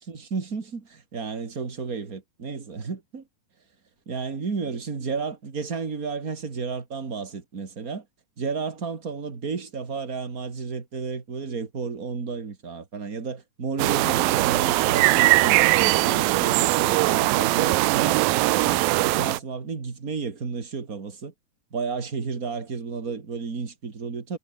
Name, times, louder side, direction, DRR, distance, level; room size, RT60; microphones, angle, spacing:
voice 1, 0.1-3.2 4.1-8.0 8.4-21.3 21.7-24.4, right 5 dB, 25° right, 2.5 m, -32 dB
sound 1, 13.8-19.4, right 21 dB, 80° right, 2.3 m, -20 dB
omnidirectional pair, 4.2 m